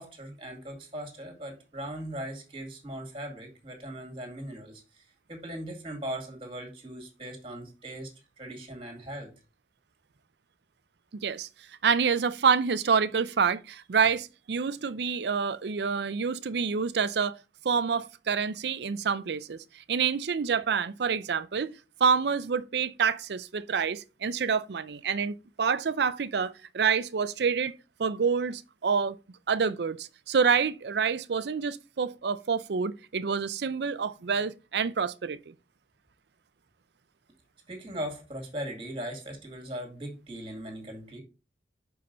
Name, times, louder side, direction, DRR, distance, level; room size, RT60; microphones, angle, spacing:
voice 1, 0.0-9.3 37.7-41.2, right 1 dB, 30° right, 2.1 m, -39 dB
voice 2, 11.1-11.5 11.8-17.4 17.6-19.6 19.9-21.7 22.0-29.2 29.5-35.5, right 6 dB, 70° right, 0.5 m, -27 dB
5.8 x 5.3 x 3.9 m
head